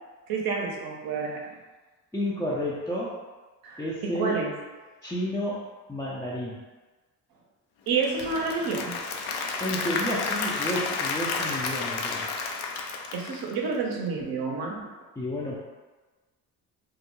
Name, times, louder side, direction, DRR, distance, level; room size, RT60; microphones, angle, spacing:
voice 1, 0.3-1.4 3.6-4.5 7.9-9.0 13.1-14.9, right 4 dB, 55° right, -1 dB, 0.7 m, -29 dB
voice 2, 2.1-3.2 3.8-4.4 5.0-6.6 9.6-12.3 15.2-15.6, left 1 dB, 5° left, -9 dB, 0.5 m, -31 dB
Applause / Crowd, 7.9-13.9, left 4 dB, 60° left, 0.5 m, -31 dB
2.3 x 2.1 x 3.0 m, 1.3 s
hypercardioid pair, 55°, 44 cm